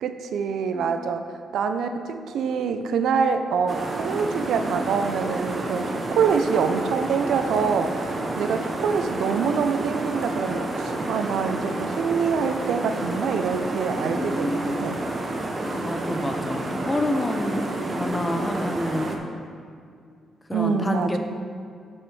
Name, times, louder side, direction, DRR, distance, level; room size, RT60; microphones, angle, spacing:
voice 1, 0.0-15.0 20.5-21.2, right 6 dB, 75° right, 8 dB, 0.5 m, -25 dB
voice 2, 0.7-1.1 13.9-15.2 15.6-19.1 20.5-21.2, left 1 dB, 15° left, 5 dB, 0.6 m, -29 dB
sound 1, 3.7-19.2, right 2 dB, 30° right, 0.8 m, -29 dB
7.1 x 6.1 x 4.8 m, 2.3 s
cardioid pair, 140°, 0 cm